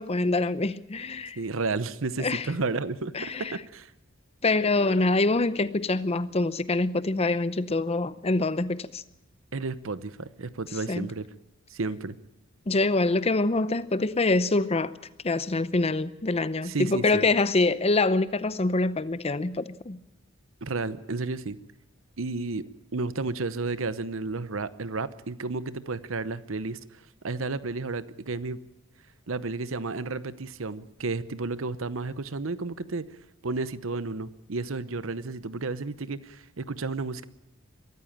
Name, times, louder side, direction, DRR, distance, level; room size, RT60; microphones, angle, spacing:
voice 1, 0.0-1.4 2.2-2.5 3.1-3.5 4.4-9.0 10.9-11.1 12.7-14.9 15.2-20.0, left 2 dB, 30° left, 0.7 m, -25 dB
voice 2, 1.4-3.9 9.5-11.3 11.7-12.2 16.6-17.3 20.6-21.6 22.2-22.6 22.9-26.8 27.2-28.6 29.3-33.1 33.4-37.2, right 3 dB, 70° right, 0.9 m, -32 dB
23.0 x 14.0 x 8.7 m
head